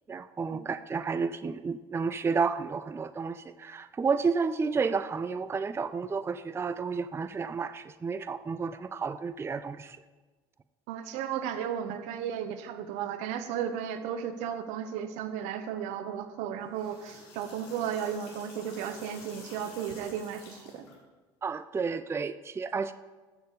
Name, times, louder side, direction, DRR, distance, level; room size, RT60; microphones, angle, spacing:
voice 1, 0.1-10.0 21.4-22.9, right 5 dB, 20° right, 13 dB, 0.4 m, -31 dB
voice 2, 10.9-20.8, right 8 dB, 70° right, 10 dB, 1.0 m, -34 dB
sound 1, 16.6-20.9, left 3 dB, 75° left, 3.6 m, -50 dB
13.5 x 6.6 x 5.2 m, 1.3 s
hypercardioid pair, 70°, 13 cm